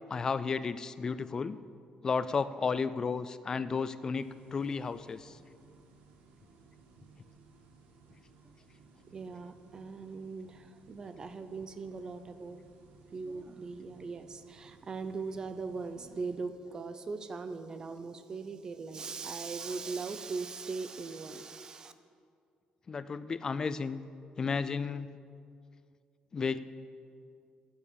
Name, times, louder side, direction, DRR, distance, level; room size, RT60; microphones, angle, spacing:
voice 1, 0.1-1.6 2.0-5.4 22.9-24.0 24.4-25.1 26.3-26.6, left 5 dB, 25° left, 14 dB, 0.3 m, -33 dB
sound 1, 4.1-16.4, right 4 dB, 85° right, 1.6 m, -60 dB
voice 2, 9.1-12.6 13.1-21.9, right 4 dB, 25° right, 10 dB, 0.5 m, -40 dB
11.0 x 8.7 x 6.9 m, 2.3 s
cardioid pair, 170°, 3 cm